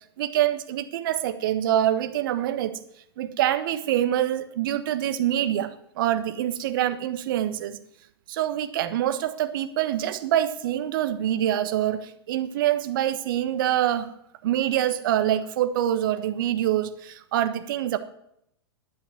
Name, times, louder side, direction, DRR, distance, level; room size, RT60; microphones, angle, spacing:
voice 1, 0.2-2.8 3.2-7.8 8.3-14.1 14.4-18.0, right 11 dB, 55° right, 11 dB, 1.3 m, -25 dB
11.5 x 9.3 x 9.4 m, 0.77 s
figure-of-eight pair, 100°, 14 cm